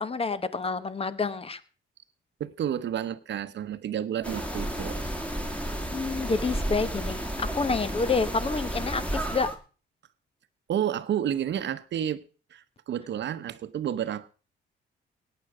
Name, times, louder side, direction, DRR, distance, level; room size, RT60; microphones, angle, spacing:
voice 1, 0.0-1.6 5.3-5.4 5.9-9.5, left 4 dB, 30° left, 1.1 m, -28 dB
voice 2, 2.4-5.1 5.3-5.5 10.7-12.2 12.5-14.3, right 10 dB, 65° right, 1.0 m, -30 dB
sound 1, 4.2-9.6, right 1 dB, 5° left, 2.2 m, -32 dB
17.0 x 9.2 x 4.9 m
cardioid pair, 90°, 20 cm